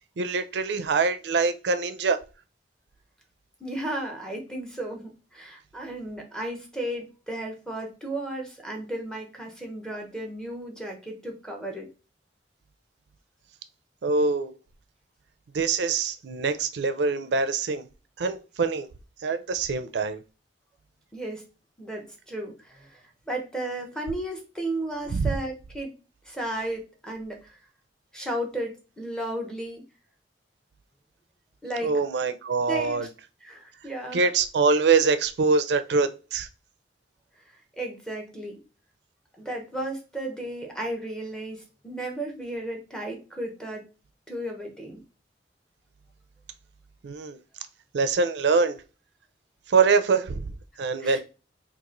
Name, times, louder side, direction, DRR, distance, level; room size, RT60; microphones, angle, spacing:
voice 1, 0.2-2.2 14.0-14.5 15.5-17.9 18.2-18.9 19.2-20.2 25.1-25.4 31.8-33.1 34.1-36.5 47.0-47.4 47.9-48.8 49.7-50.5 50.8-51.2, right 4 dB, 65° right, 0.4 m, -24 dB
voice 2, 3.6-11.9 21.1-21.5 21.8-25.9 26.2-27.6 28.1-29.8 31.6-31.9 32.6-33.0 33.4-34.2 37.8-38.6 39.4-43.8 44.3-45.0 51.0-51.2, right 1 dB, 5° left, 0.8 m, -34 dB
2.9 x 2.5 x 3.7 m
head